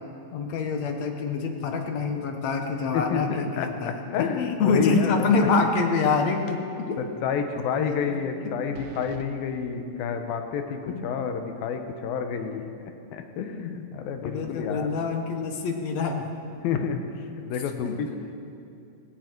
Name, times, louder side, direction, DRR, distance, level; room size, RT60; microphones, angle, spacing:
voice 1, 0.3-4.0 4.4-7.0 7.8-8.2 10.9-11.0 13.6-13.7 14.2-16.3 17.9-18.0, left 4 dB, 65° left, 4 dB, 2.0 m, -26 dB
voice 2, 2.9-5.3 7.0-12.7 13.1-15.0 16.6-17.0 17.5-18.1, left 7 dB, 80° left, 6 dB, 2.8 m, -29 dB
sound 1, 8.7-9.3, right 8 dB, 75° right, 2.1 m, -44 dB
17.0 x 17.0 x 4.6 m, 2.6 s
omnidirectional pair, 4.2 m